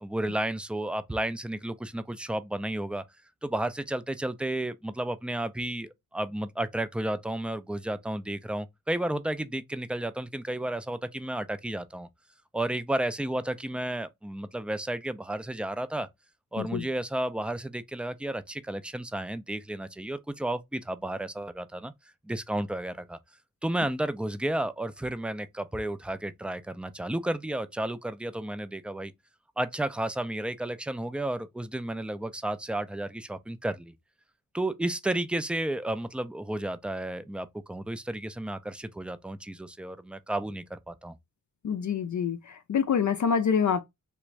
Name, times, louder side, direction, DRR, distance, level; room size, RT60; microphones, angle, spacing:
voice 1, 0.0-3.0 3.4-12.1 12.5-16.1 16.5-21.9 22.2-23.2 23.6-29.1 29.6-33.9 34.5-41.2, right 1 dB, 5° right, 0.3 m, -32 dB
voice 2, 41.6-42.4 42.7-43.8, left 7 dB, 60° left, 0.4 m, -26 dB
3.4 x 2.5 x 3.1 m
cardioid pair, 60°, 34 cm